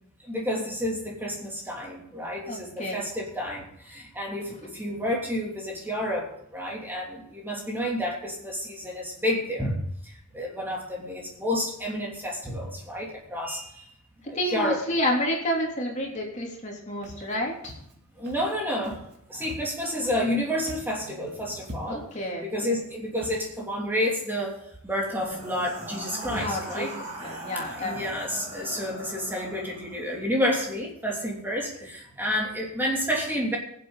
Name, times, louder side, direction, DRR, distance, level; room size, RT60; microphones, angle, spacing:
voice 1, 0.2-13.9 14.3-14.8 18.2-19.0 19.3-22.0 22.4-24.6 24.8-26.9 27.5-33.6, equal, 10° right, -2 dB, 3.0 m, -30 dB
voice 2, 2.5-3.0 14.2-17.7 21.9-22.7 26.3-26.9 27.2-28.1, left 1 dB, 35° left, -1 dB, 3.1 m, -30 dB
Walk footsteps, 17.0-17.3 17.6-17.9 18.2-18.5 18.8-19.2 19.4-20.3 20.6-21.0 21.3-21.4 21.6-22.2 22.7-22.8 23.1-23.4, left 1 dB, 50° right, 3.0 m, -43 dB
sound 1, 24.9-30.1, right 1 dB, 30° right, 4.7 m, -40 dB
22.5 x 8.1 x 4.0 m, 0.74 s
head